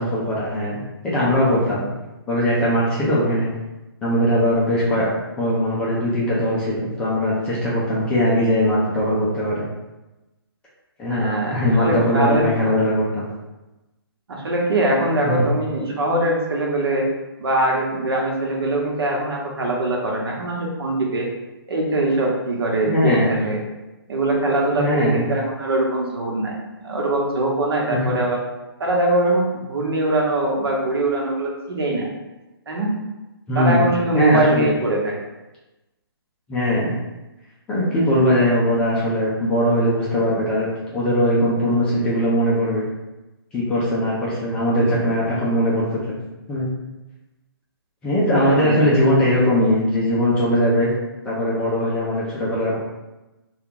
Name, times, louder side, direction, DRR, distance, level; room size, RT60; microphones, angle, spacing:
voice 1, 0.0-1.9 2.3-3.5 4.0-5.1 5.4-9.6 11.0-13.2 15.2-15.4 22.9-23.3 24.8-25.3 27.9-28.0 33.5-33.9 34.1-34.7 36.5-36.9 37.7-42.9 43.5-46.2 46.5-46.7 48.0-50.9 51.2-52.8, equal, 5° left, -7 dB, 0.3 m, -20 dB
voice 2, 11.1-12.7 14.3-17.1 17.4-21.3 21.7-23.6 24.1-26.6 26.8-28.4 28.8-32.1 32.7-32.9 33.5-35.2 48.3-48.8, right 1 dB, 75° right, -1 dB, 1.0 m, -22 dB
2.8 x 2.3 x 3.6 m, 1.0 s
hypercardioid pair, 160°, 13 cm